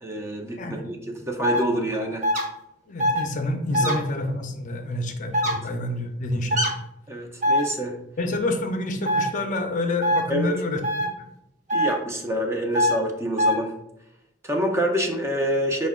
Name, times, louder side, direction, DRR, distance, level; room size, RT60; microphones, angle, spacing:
voice 1, 0.0-2.3 3.8-4.0 5.5-5.6 7.1-8.0 10.3-10.5 11.7-13.7 14.4-15.9, equal, 15° right, 3 dB, 0.4 m, -27 dB
voice 2, 0.6-0.9 2.9-6.7 8.2-11.3, left 2 dB, 45° left, 5 dB, 0.5 m, -28 dB
sound 1, 1.4-1.6 2.2-2.4 3.0-3.2 3.7-3.9 5.3-5.5 6.5-6.7 7.4-7.6 9.0-9.3 10.0-10.2 10.8-11.1 11.7-11.9 12.7-12.9 13.4-13.5, equal, 45° right, 0.9 m, -21 dB
5.2 x 2.1 x 3.5 m, 0.81 s
head